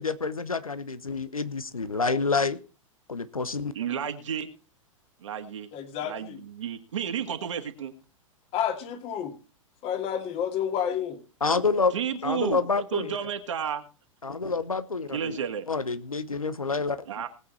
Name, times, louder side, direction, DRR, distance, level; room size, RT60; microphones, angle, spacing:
voice 1, 0.0-2.6 3.1-3.7 11.4-11.9 12.2-13.2 14.2-15.4 15.7-17.0, left 4 dB, 80° left, 13 dB, 1.0 m, -28 dB
voice 2, 3.7-4.5 5.2-5.7 6.0-7.9 11.9-13.8 15.1-15.7 17.1-17.3, right 8 dB, 60° right, 7 dB, 1.9 m, -32 dB
voice 3, 5.7-6.4 8.5-9.3 9.8-11.2, left 9 dB, 35° left, 6 dB, 2.5 m, -30 dB
19.0 x 8.3 x 4.2 m, 0.33 s
figure-of-eight pair, 100°, 18 cm